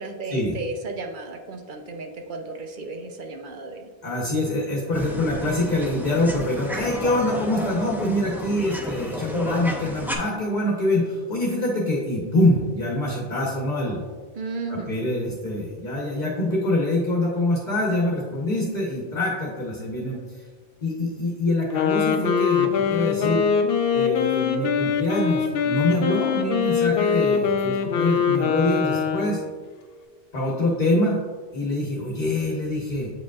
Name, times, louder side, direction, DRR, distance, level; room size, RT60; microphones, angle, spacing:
voice 1, 0.0-3.9 14.4-15.0, right 3 dB, 60° right, 4 dB, 0.8 m, -34 dB
voice 2, 4.0-14.0 14.7-20.5 20.8-23.4 23.9-29.4 30.3-31.2 31.5-33.1, left 1 dB, 50° left, -3 dB, 1.0 m, -25 dB
sound 1, 4.9-10.2, left 1 dB, 5° right, 0.4 m, -32 dB
Wind instrument woodwind instrument, 21.6-29.5, left 7 dB, 70° left, 0.8 m, -23 dB
8.1 x 5.0 x 2.3 m, 1.5 s
omnidirectional pair, 1.0 m